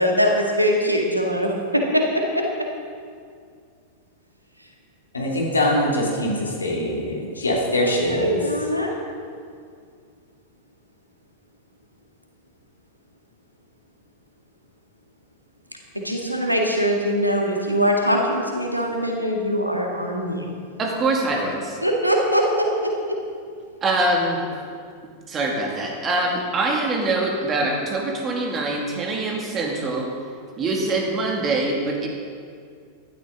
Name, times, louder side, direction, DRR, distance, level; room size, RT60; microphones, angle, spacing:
voice 1, 0.0-2.7 7.8-8.9 15.9-20.5 21.8-23.2, equal, 90° right, 1 dB, 1.8 m, -22 dB
voice 2, 5.1-8.4, left 1 dB, 75° left, -2 dB, 2.8 m, -23 dB
voice 3, 20.8-21.8 23.8-24.4 25.3-30.1 30.6-32.1, right 2 dB, 25° right, 0 dB, 2.5 m, -24 dB
16.0 x 12.5 x 4.0 m, 2.2 s
figure-of-eight pair, 90°, 0 cm